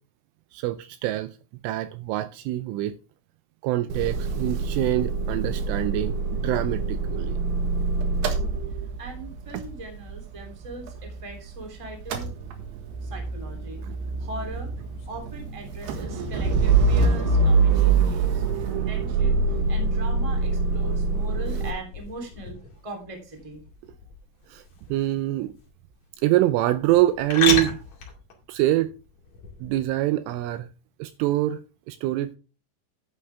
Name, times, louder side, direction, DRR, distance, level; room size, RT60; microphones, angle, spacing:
voice 1, 0.5-1.4 1.6-3.0 3.6-7.4 13.8-14.0 24.5-24.6 24.9-25.5 26.2-27.8 28.5-28.9 29.6-30.7 31.0-32.4, right 15 dB, 85° right, 2.9 m, -25 dB
Motor vehicle (road) / Engine starting / Idling, 3.9-11.6 11.9-21.7, right 3 dB, 65° right, 3.2 m, -25 dB
voice 2, 9.0-12.3 13.0-13.8 14.2-14.7 15.0-22.5 22.8-23.6, right 2 dB, 10° right, 1.6 m, -39 dB
sound 1, 14.8-29.8, left 5 dB, 45° left, 2.6 m, -36 dB
11.0 x 9.9 x 3.4 m
omnidirectional pair, 6.0 m